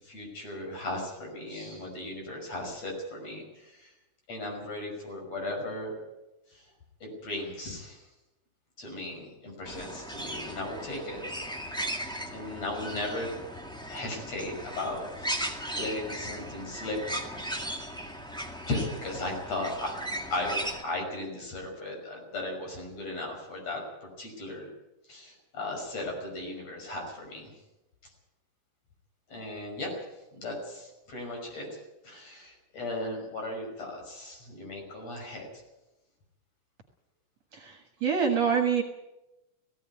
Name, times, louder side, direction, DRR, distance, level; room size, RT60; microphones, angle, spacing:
voice 1, 0.0-3.9 4.3-5.9 6.5-6.7 7.0-8.1 8.8-11.2 11.7-13.3 13.9-15.5 15.7-17.2 18.6-19.9 20.3-24.7 25.1-27.5 29.3-30.0 30.3-35.5, left 2 dB, 50° left, 1 dB, 6.9 m, -36 dB
sound 1, 9.7-20.8, right 1 dB, ahead, 1.1 m, -37 dB
voice 2, 37.6-38.8, right 6 dB, 55° right, 4 dB, 2.5 m, -26 dB
17.0 x 17.0 x 9.4 m, 0.97 s
omnidirectional pair, 4.0 m